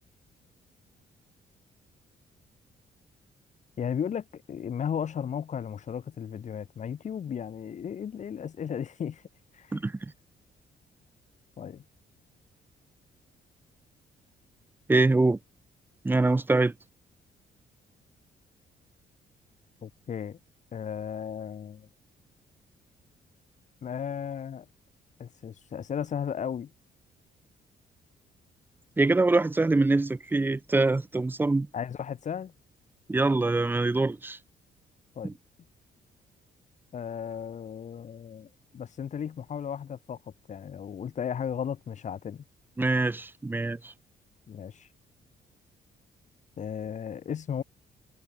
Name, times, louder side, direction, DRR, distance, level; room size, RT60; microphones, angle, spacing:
voice 1, 3.8-9.2 9.5-9.8 11.6-11.8 19.8-20.4 20.7-21.9 23.8-24.7 25.2-26.7 31.7-32.5 35.1-35.4 36.9-40.2 40.5-42.4 44.5-44.9 46.6-47.6, left 8 dB, 45° left, 1.5 m, -35 dB
voice 2, 14.9-15.4 16.0-16.7 29.0-31.7 33.1-34.4 35.2-35.3 42.8-43.9, right 2 dB, 10° right, 0.7 m, -24 dB
cardioid pair, 150°, 18 cm